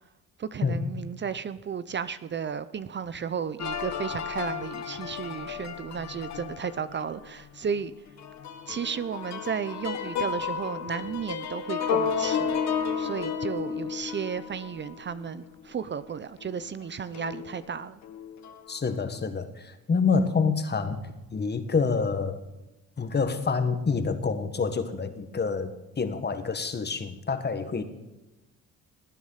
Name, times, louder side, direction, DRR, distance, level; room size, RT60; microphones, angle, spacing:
voice 1, 0.4-7.9 8.7-12.6 13.0-18.0, right 7 dB, 35° right, 14 dB, 0.6 m, -33 dB
sound 1, 3.6-7.2 7.7-7.8 8.2-16.1 16.4-16.6 17.1-17.6 18.0-18.7, left 7 dB, 65° left, 1.6 m, -33 dB
voice 2, 18.7-21.0 21.3-22.4 23.0-27.8, left 5 dB, 35° left, 9 dB, 1.7 m, -27 dB
18.5 x 9.6 x 5.7 m, 1.0 s
cardioid pair, 90°, 30 cm